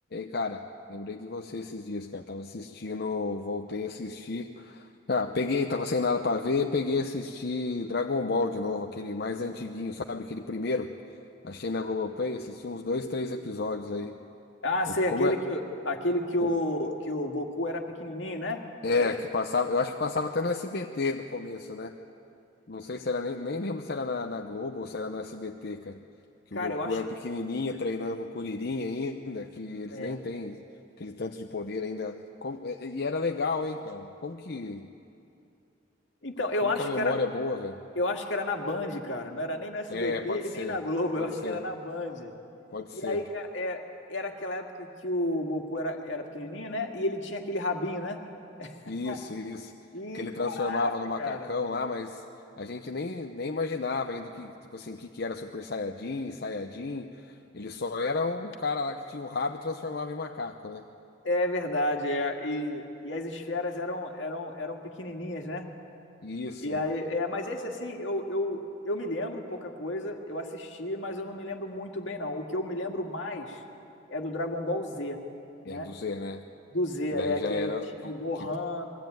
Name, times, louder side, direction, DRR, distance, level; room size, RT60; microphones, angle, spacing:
voice 1, 0.1-0.6 0.9-10.9 11.4-14.2 14.9-15.4 16.4-16.5 18.8-22.0 22.7-26.0 26.5-30.6 31.0-34.9 36.6-37.8 39.9-40.8 41.2-41.6 42.7-43.2 48.9-49.7 50.1-52.2 52.6-60.8 66.2-66.8 75.6-76.4 77.1-78.2, left 3 dB, 55° left, 4 dB, 0.8 m, -32 dB
voice 2, 14.6-18.6 19.0-19.2 26.5-27.0 29.9-30.2 36.2-37.2 38.0-42.3 42.9-43.8 44.1-48.2 48.6-49.2 49.9-50.9 51.2-51.6 61.2-65.7 66.6-73.6 74.1-75.2 75.6-75.9 76.7-78.8, left 1 dB, 80° left, 3 dB, 2.0 m, -31 dB
22.0 x 15.5 x 9.2 m, 2.7 s
head